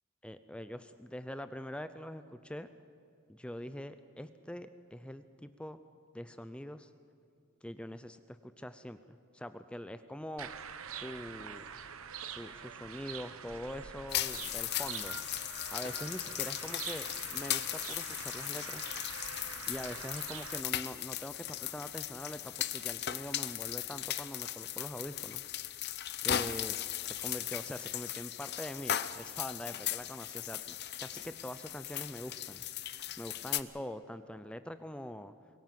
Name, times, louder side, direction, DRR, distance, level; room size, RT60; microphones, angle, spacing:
voice 1, 0.2-2.7 3.3-5.8 6.1-6.9 7.6-10.5 10.9-11.6 12.3-15.2 15.7-18.8 19.7-25.4 26.2-26.8 27.0-32.6 33.2-35.3, equal, 5° left, 11 dB, 0.5 m, -43 dB
sound 1, 10.4-20.6, right 7 dB, 85° right, 1.0 m, -45 dB
sound 2, 14.1-33.6, left 12 dB, 50° left, 0.7 m, -37 dB
23.5 x 16.5 x 7.7 m, 2.6 s
head